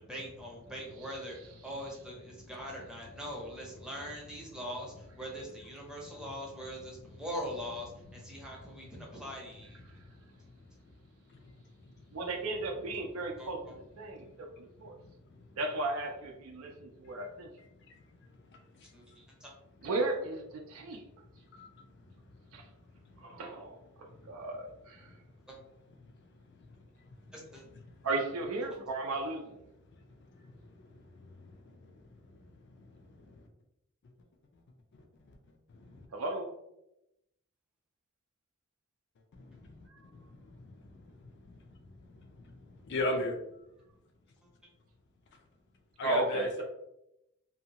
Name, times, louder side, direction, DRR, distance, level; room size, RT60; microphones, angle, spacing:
voice 1, 0.1-9.8 13.4-13.5 18.9-19.5 25.5-25.6 27.3-27.6, equal, 5° right, 0.6 m, -42 dB
voice 2, 12.1-15.0 15.6-17.5 19.8-21.0 22.5-22.6 23.2-25.1 28.0-29.6 36.1-36.5 39.9-40.0 46.0-46.6, right 2 dB, 75° right, 0.4 m, -35 dB
voice 3, 15.0-15.6 17.1-17.2 18.5-18.9 21.5-21.7 23.1-23.3 24.1-24.3 26.0-26.1 26.6-26.8 27.2-27.3 27.9-28.0 30.3-33.5 34.9-35.4 35.7-36.1 39.4-43.4 46.0-46.6, left 1 dB, 55° left, 0.4 m, -41 dB
2.7 x 2.2 x 2.8 m
head